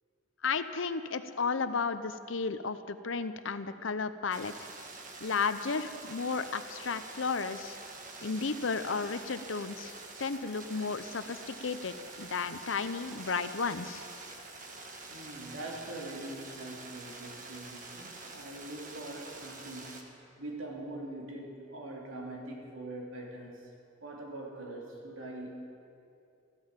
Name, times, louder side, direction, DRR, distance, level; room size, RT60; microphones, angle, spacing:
voice 1, 0.4-4.5 5.2-7.8 8.2-14.0, left 4 dB, 75° left, 12 dB, 0.7 m, -33 dB
sound 1, 4.3-20.0, right 3 dB, 40° right, 1.5 m, -47 dB
voice 2, 15.1-23.7 24.0-25.5, right 1 dB, 90° right, -1 dB, 3.1 m, -43 dB
15.0 x 12.5 x 7.4 m, 2.6 s
head